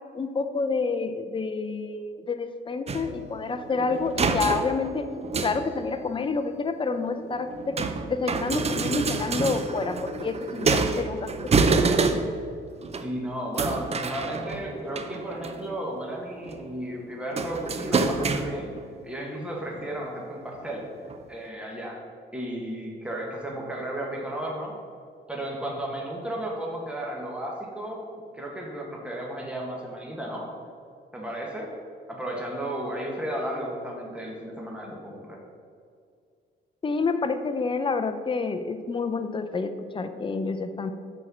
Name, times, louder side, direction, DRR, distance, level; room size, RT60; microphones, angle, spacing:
voice 1, 0.1-5.1 5.4-11.3 11.6-11.7 12.1-12.2 36.8-40.9, left 4 dB, 25° left, 9 dB, 0.6 m, -29 dB
sound 1, 2.9-6.2 6.9-12.5 12.8-13.1 13.6-15.8 16.2-16.6 17.3-18.8 19.8-19.9 20.6-20.7 21.0-21.2, right 4 dB, 30° right, 0.5 m, -28 dB
voice 2, 13.0-18.7 19.0-20.9 21.3-22.0 22.3-24.8 25.3-30.5 31.1-31.7 32.1-35.4, right 1 dB, 5° right, -2 dB, 1.4 m, -34 dB
6.2 x 4.4 x 6.2 m, 2.2 s
cardioid pair, 90°, 20 cm